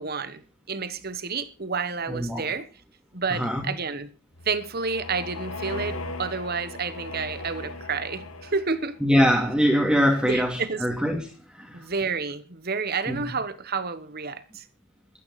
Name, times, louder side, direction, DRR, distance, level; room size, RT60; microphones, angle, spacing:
voice 1, 0.0-2.7 3.1-4.1 4.4-9.0 10.2-10.8 11.7-14.6, right 4 dB, 45° right, 1.2 m, -30 dB
voice 2, 2.1-2.4 3.3-3.6 9.0-11.2 11.6-11.8 13.1-13.2, equal, 5° right, 2.3 m, -22 dB
sound 1, 4.3-9.0, left 2 dB, 75° left, 2.0 m, -37 dB
16.0 x 12.5 x 4.2 m
head